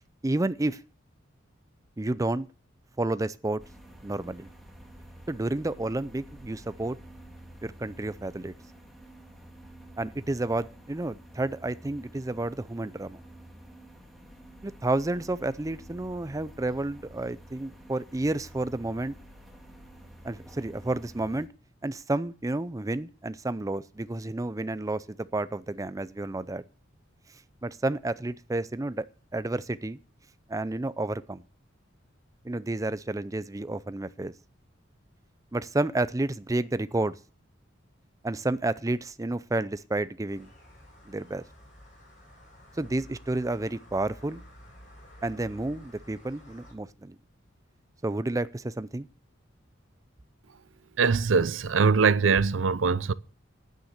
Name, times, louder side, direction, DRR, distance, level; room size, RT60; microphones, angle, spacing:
voice 1, 0.2-0.8 2.0-2.5 3.0-3.6 4.0-4.5 5.3-7.0 7.6-8.5 10.0-13.2 14.6-19.1 20.2-21.5 21.8-26.6 27.6-29.1 29.3-30.0 30.5-31.4 32.4-34.3 35.5-37.2 38.2-40.5 41.1-41.4 42.8-44.4 45.2-47.2 48.0-49.1, right 2 dB, 15° right, 0.5 m, -30 dB
sound 1, 3.6-21.5, right 1 dB, ahead, 1.8 m, -49 dB
sound 2, 40.3-46.7, equal, 40° left, 7.0 m, -51 dB
voice 2, 51.0-53.1, right 5 dB, 70° right, 0.6 m, -22 dB
10.0 x 9.3 x 6.6 m
head